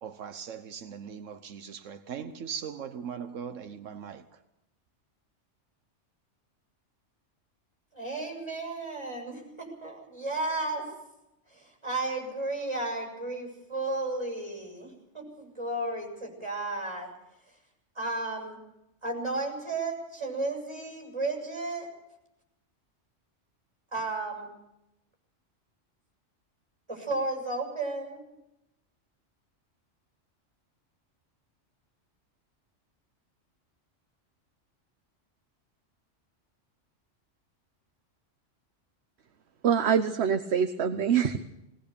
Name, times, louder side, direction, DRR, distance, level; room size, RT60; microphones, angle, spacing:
voice 1, 0.0-4.3, right 7 dB, 85° right, 1.3 m, -39 dB
voice 2, 7.9-10.9 11.5-17.1 18.0-18.6 19.0-21.9 23.9-24.5 26.9-28.2, right 2 dB, 20° right, 7.0 m, -33 dB
voice 3, 39.6-41.4, right 7 dB, 60° right, 1.2 m, -25 dB
20.0 x 19.5 x 6.9 m
omnidirectional pair, 1.3 m